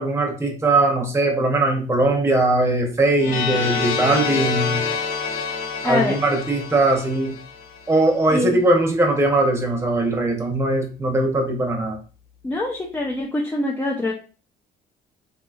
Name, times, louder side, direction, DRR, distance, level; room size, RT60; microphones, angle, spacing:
voice 1, 0.0-4.8 5.8-7.4 7.9-12.0, right 2 dB, 15° right, 1 dB, 0.8 m, -20 dB
sound 1, 3.2-8.0, left 5 dB, 60° left, 0.7 m, -27 dB
voice 2, 5.8-6.2 8.3-8.5 12.4-14.1, left 2 dB, 10° left, -2 dB, 0.4 m, -24 dB
2.7 x 2.7 x 2.4 m, 0.36 s
cardioid pair, 110°, 17 cm